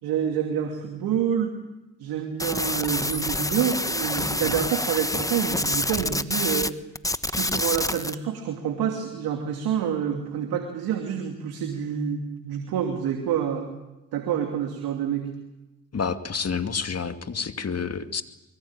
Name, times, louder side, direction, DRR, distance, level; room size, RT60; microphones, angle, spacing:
voice 1, 0.0-1.6 2.0-6.7 7.3-13.7 14.1-15.3, right 8 dB, 80° right, 4 dB, 2.8 m, -27 dB
sound 1, 2.4-6.7 7.0-8.1, left 1 dB, 10° left, 1.3 m, -27 dB
voice 2, 15.9-18.2, left 5 dB, 45° left, 8 dB, 2.5 m, -29 dB
24.0 x 23.5 x 9.0 m, 1.0 s
hypercardioid pair, 45°, 36 cm